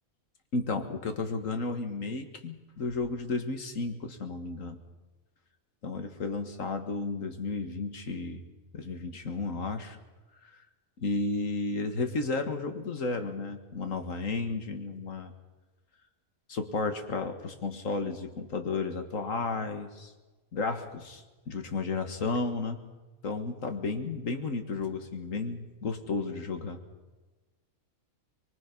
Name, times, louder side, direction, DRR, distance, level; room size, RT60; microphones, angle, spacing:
voice 1, 0.5-4.8 5.8-8.4 8.7-10.0 10.4-10.6 11.0-15.3 16.5-20.1 20.5-22.8 23.2-26.8, left 3 dB, 65° left, 7 dB, 2.1 m, -33 dB
24.5 x 23.0 x 5.4 m, 1.2 s
omnidirectional pair, 1.5 m